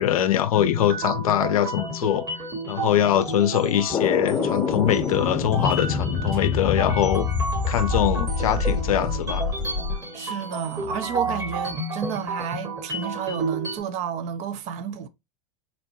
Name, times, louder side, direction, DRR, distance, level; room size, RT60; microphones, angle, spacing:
voice 1, 0.0-2.3 2.7-7.3 7.7-9.5, left 11 dB, 70° left, 0.5 m, -23 dB
sound 1, 0.5-13.8, right 2 dB, 20° right, 0.9 m, -32 dB
sound 2, 3.9-10.0, left 5 dB, 25° left, 0.8 m, -26 dB
sound 3, 4.7-11.8, right 2 dB, 80° right, 1.9 m, -42 dB
voice 2, 10.1-15.1, right 8 dB, 40° right, 0.5 m, -31 dB
4.0 x 2.2 x 2.8 m
hypercardioid pair, 95°, 19 cm